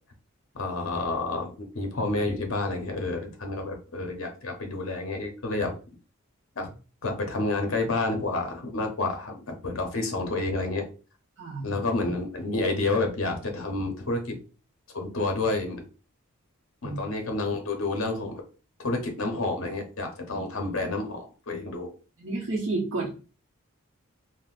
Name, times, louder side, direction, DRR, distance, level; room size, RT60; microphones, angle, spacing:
voice 1, 0.5-5.7 6.6-6.7 7.0-10.9 11.6-14.4 14.9-15.9 16.8-18.4 18.8-21.9, left 2 dB, 65° left, 3 dB, 0.7 m, -29 dB
voice 2, 11.4-11.7 16.8-17.0 22.2-23.3, right 3 dB, 60° right, -5 dB, 0.8 m, -31 dB
3.5 x 2.1 x 2.4 m, 0.35 s
head